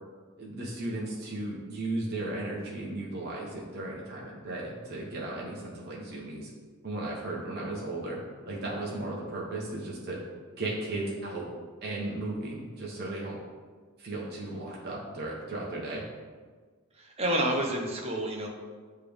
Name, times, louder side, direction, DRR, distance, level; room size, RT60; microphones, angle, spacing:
voice 1, 0.4-6.5 6.8-8.2 8.5-10.2 10.6-11.5 11.8-13.4 14.0-16.0, right 2 dB, 50° right, -4 dB, 1.0 m, -35 dB
voice 2, 17.2-18.5, right 1 dB, 30° right, 0 dB, 0.8 m, -28 dB
8.2 x 3.3 x 3.5 m, 1.5 s
head